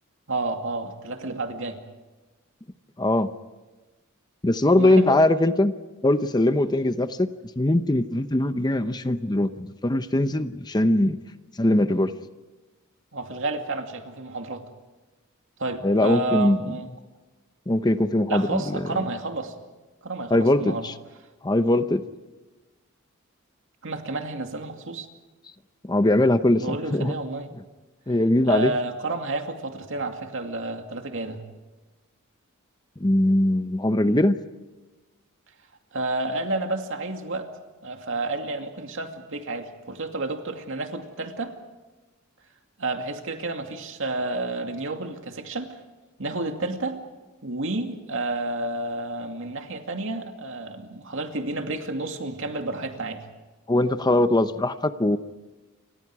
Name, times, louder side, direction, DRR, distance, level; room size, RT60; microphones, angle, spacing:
voice 1, 0.3-1.8 4.7-5.3 13.1-14.6 15.6-16.9 18.3-19.5 20.0-20.9 23.8-25.1 26.6-27.5 28.5-31.4 35.9-37.5 37.8-41.6 42.8-45.8 46.2-47.0 47.4-53.2, right 2 dB, 65° right, 5 dB, 2.4 m, -30 dB
voice 2, 3.0-3.3 4.4-5.7 6.0-7.3 7.6-11.2 11.6-12.1 15.8-16.6 17.7-18.8 20.3-20.9 21.4-22.0 25.9-27.1 28.1-28.7 33.0-34.4 53.7-55.2, left 1 dB, 20° left, 10 dB, 0.8 m, -21 dB
29.0 x 25.0 x 4.8 m, 1.2 s
head